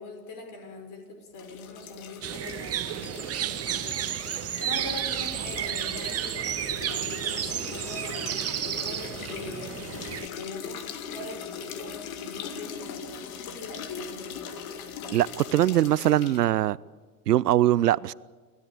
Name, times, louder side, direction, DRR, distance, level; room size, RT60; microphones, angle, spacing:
voice 1, 0.0-4.1 4.6-9.8 10.4-14.5, left 3 dB, 45° left, 6 dB, 5.4 m, -42 dB
sound 1, 1.3-16.5, left 7 dB, 65° left, 2.3 m, -40 dB
sound 2, 2.2-10.3, right 11 dB, 30° right, 1.4 m, -32 dB
voice 2, 15.1-16.8 17.3-18.1, right 13 dB, 85° right, 23 dB, 0.6 m, -22 dB
28.0 x 13.0 x 8.8 m, 1.4 s
hypercardioid pair, 85°, 46 cm